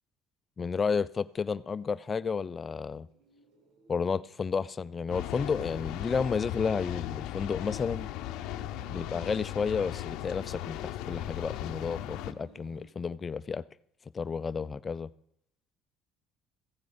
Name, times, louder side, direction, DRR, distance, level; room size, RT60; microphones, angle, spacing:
voice 1, 0.6-3.1 3.9-8.1 8.9-13.6 14.1-15.1, left 5 dB, 30° left, 0.4 m, -32 dB
sound 1, 1.2-12.9, right 4 dB, 75° right, 2.0 m, -58 dB
sound 2, 5.1-12.3, left 14 dB, 80° left, 0.6 m, -37 dB
15.0 x 9.4 x 5.1 m
cardioid pair, 110°, 0 cm